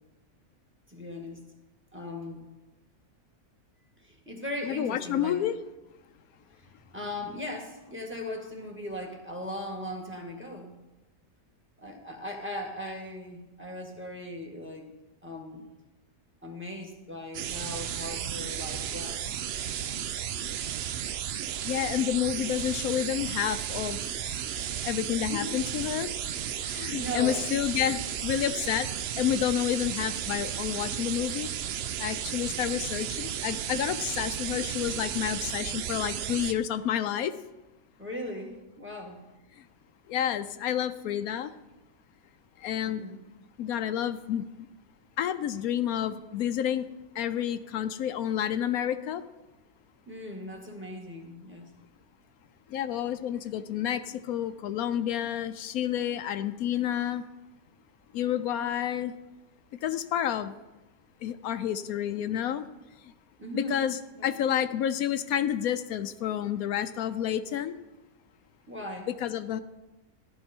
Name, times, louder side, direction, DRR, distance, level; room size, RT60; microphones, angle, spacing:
voice 1, 0.9-1.4 1.9-2.4 4.0-5.4 6.6-10.7 11.8-14.9 15.2-15.6 16.4-19.3 25.3-25.6 26.3-26.4 26.7-27.5 27.8-28.0 38.0-39.2 42.9-43.2 50.1-51.7 63.4-64.3 68.7-69.1, left 1 dB, 10° right, 2 dB, 1.7 m, -38 dB
voice 2, 4.6-5.5 21.6-24.0 24.3-24.4 24.8-26.1 26.6-28.9 29.2-31.5 32.0-37.4 39.5-39.6 40.1-41.5 42.6-43.1 43.6-44.7 45.2-46.9 47.1-49.2 52.7-57.3 58.1-59.1 59.7-60.5 61.2-62.7 63.0-63.1 63.5-67.7 69.1-69.6, left 10 dB, 80° left, 11 dB, 1.1 m, -29 dB
sound 1, 17.3-36.5, right 9 dB, 65° right, 0.6 m, -34 dB
14.5 x 11.0 x 4.4 m, 1.1 s
omnidirectional pair, 1.5 m